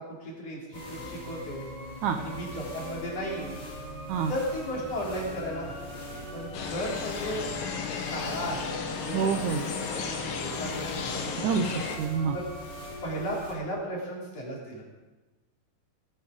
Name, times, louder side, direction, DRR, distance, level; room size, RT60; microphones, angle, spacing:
voice 1, 0.0-1.6 2.2-3.6 4.3-7.5 8.0-8.8 9.1-9.6 9.9-11.7 12.3-12.4 13.0-14.8, equal, 45° left, -4 dB, 4.4 m, -35 dB
sound 1, 0.7-13.5, equal, 30° left, 5.2 m, -40 dB
sound 2, 6.5-12.0, left 6 dB, 70° left, 3.0 m, -34 dB
voice 2, 9.1-9.6 11.4-12.4, right 6 dB, 75° right, 6 dB, 1.9 m, -27 dB
18.0 x 10.0 x 5.2 m, 1.2 s
omnidirectional pair, 4.3 m